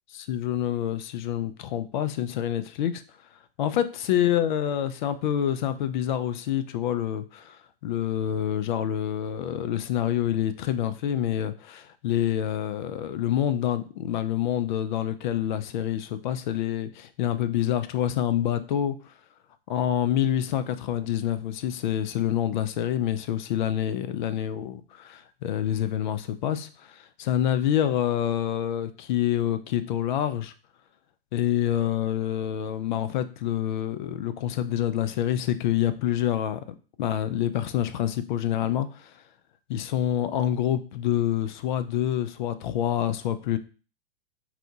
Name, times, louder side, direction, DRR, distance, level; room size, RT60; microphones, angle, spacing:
voice 1, 0.1-3.0 3.6-19.0 19.7-30.5 31.3-39.1 39.7-43.6, left 10 dB, 50° left, 0.5 m, -27 dB
4.1 x 2.2 x 2.7 m
figure-of-eight pair, 105°, 30 cm